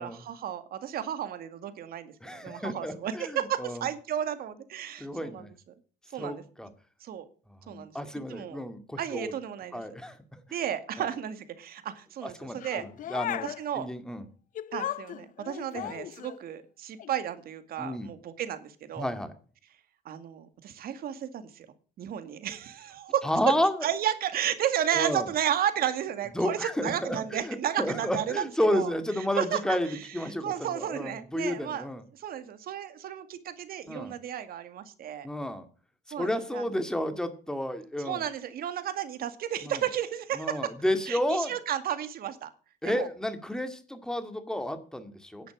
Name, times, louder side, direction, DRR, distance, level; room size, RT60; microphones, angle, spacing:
voice 1, 0.0-5.5 6.1-6.4 7.0-7.3 7.7-8.0 8.3-8.6 9.0-9.8 10.5-12.9 13.4-13.9 14.7-19.1 20.1-21.7 22.0-23.2 23.8-28.9 29.4-29.8 30.4-31.9 32.1-35.3 36.1-36.6 38.1-40.6 41.1-42.5 42.8-43.1 45.4-45.5, right 10 dB, 65° right, 10 dB, 2.1 m, -33 dB
voice 2, 2.2-3.9 5.0-5.5 6.2-6.7 7.6-9.3 9.7-10.4 11.0-11.1 12.2-13.5 13.7-14.2 15.7-15.9 17.8-18.1 19.0-19.3 23.2-23.9 24.9-25.3 26.3-32.0 33.9-34.1 35.2-35.7 36.2-38.2 39.6-39.8 40.4-41.5 42.8-45.5, left 1 dB, 5° left, 8 dB, 2.1 m, -31 dB
sound 1, 12.6-13.6 14.5-16.4 17.0-17.2, left 12 dB, 50° left, 0.5 m, -36 dB
11.0 x 8.6 x 7.6 m, 0.40 s
cardioid pair, 110°, 17 cm